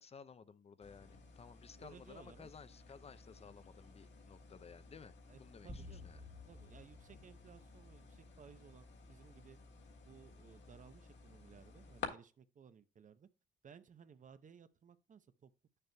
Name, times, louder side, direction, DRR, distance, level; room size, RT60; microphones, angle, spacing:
voice 1, 0.0-5.1 5.4-6.2, left 6 dB, 30° left, 0.5 m, -56 dB
sound 1, 0.8-12.1, left 5 dB, 65° left, 1.7 m, -54 dB
voice 2, 1.7-2.5 5.3-6.1 6.4-9.6 10.0-13.3 13.6-15.5, right 7 dB, 40° right, 0.7 m, -59 dB
sound 2, 5.7-8.2, left 2 dB, 20° right, 1.1 m, -53 dB
8.6 x 6.6 x 2.2 m
cardioid pair, 90°, 20 cm